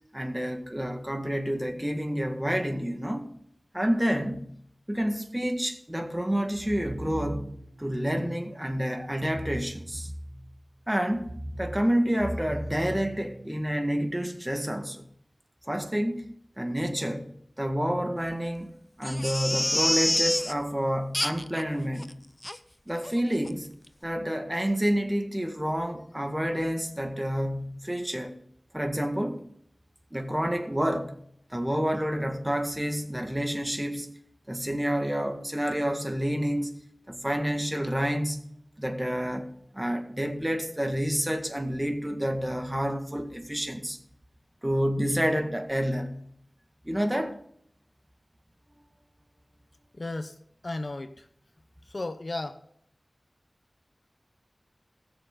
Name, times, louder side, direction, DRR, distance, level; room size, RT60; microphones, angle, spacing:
voice 1, 0.1-3.3 3.7-4.5 4.9-7.5 7.8-10.1 10.9-11.3 11.6-15.0 15.7-16.3 16.6-17.3 17.6-18.7 19.0-22.1 22.9-23.7 24.0-28.4 28.7-29.4 30.1-31.1 31.5-34.1 34.5-36.8 37.1-38.4 38.8-44.0 44.6-46.1 46.9-47.4, equal, 15° right, 1.8 m, -29 dB
sound 1, 6.5-7.8 9.2-10.6 11.1-13.6, right 1 dB, 65° right, 1.9 m, -38 dB
Crying sobbing, 19.0-20.5 21.1-21.6 22.0-22.1 22.4-22.6 23.0-23.2 23.4-23.5, left 1 dB, 25° left, 0.7 m, -27 dB
voice 2, 49.9-50.4 50.6-51.3 51.9-52.6, left 2 dB, 65° left, 0.8 m, -34 dB
20.5 x 6.9 x 3.9 m
wide cardioid pair, 50°, 0 cm